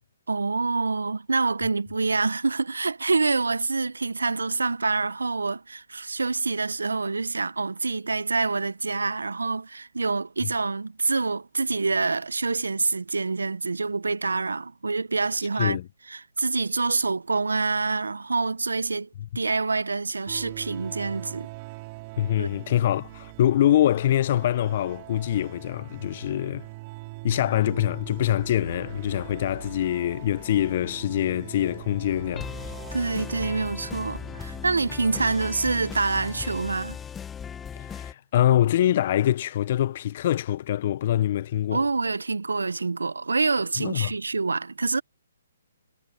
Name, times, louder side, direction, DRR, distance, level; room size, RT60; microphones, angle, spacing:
voice 1, 0.3-15.8 16.1-19.1 19.3-21.5 22.4-22.5 32.9-37.0 41.7-45.0, right 3 dB, 80° right, 1.1 m, -26 dB
sound 1, 20.3-36.2, right 25 dB, 35° right, 5.9 m, -42 dB
voice 2, 22.2-26.7 27.2-32.7 37.8-41.8 43.8-44.1, left 12 dB, 45° left, 0.8 m, -24 dB
sound 2, 30.3-31.0 31.5-38.1, left 7 dB, 10° left, 1.0 m, -38 dB
figure-of-eight pair, 135°, 0 cm